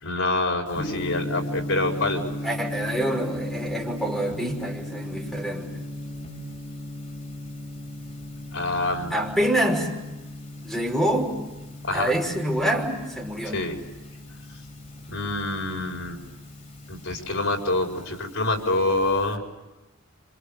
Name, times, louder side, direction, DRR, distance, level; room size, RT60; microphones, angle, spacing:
voice 1, 0.0-2.3 8.5-9.1 11.8-12.1 13.5-13.8 15.1-16.2 16.9-19.4, left 2 dB, 80° left, 2 dB, 4.9 m, -26 dB
Gong, 0.7-19.3, left 1 dB, 40° left, 4.3 m, -37 dB
voice 2, 2.4-5.9 9.1-10.0 10.6-11.4 11.9-13.6, right 1 dB, ahead, -1 dB, 5.8 m, -26 dB
29.0 x 26.5 x 6.7 m, 1.0 s
head